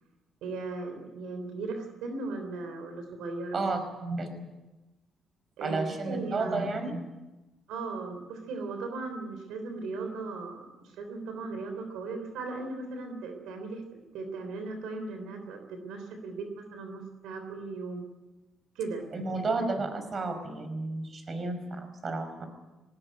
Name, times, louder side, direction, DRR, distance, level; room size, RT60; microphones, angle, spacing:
voice 1, 0.4-3.6 4.0-4.2 5.6-7.0 7.7-13.8 14.1-18.0 18.8-19.3, right 3 dB, 90° right, 6 dB, 3.5 m, -37 dB
voice 2, 5.6-6.9 19.1-22.5, right 3 dB, 40° right, 8 dB, 5.1 m, -32 dB
19.0 x 19.0 x 9.6 m, 1.1 s
cardioid pair, 90°, 0 cm